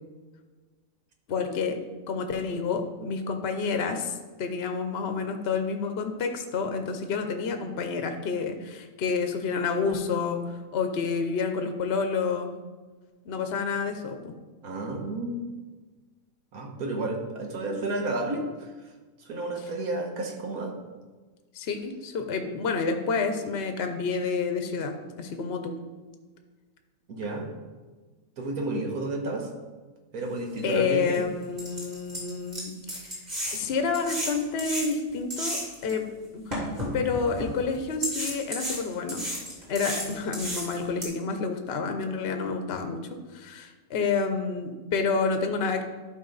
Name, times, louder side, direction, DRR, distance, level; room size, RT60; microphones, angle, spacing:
voice 1, 1.3-1.8 2.1-12.5 13.3-14.3 19.6-19.7 21.5-25.7 30.6-33.2 33.5-36.1 36.3-36.6 36.9-39.2 39.7-43.0 43.3-45.8, left 5 dB, 55° left, 6 dB, 0.9 m, -29 dB
voice 2, 14.6-15.4 16.5-18.7 19.3-20.7 27.1-27.5 28.4-29.5 30.1-31.2, right 2 dB, 90° right, 2 dB, 1.6 m, -31 dB
sound 1, 30.6-30.7 31.1-31.2 31.6-35.9 36.5-37.5 38.0-41.0, equal, 30° right, 2.7 m, -33 dB
12.0 x 4.9 x 4.0 m, 1.3 s
omnidirectional pair, 1.5 m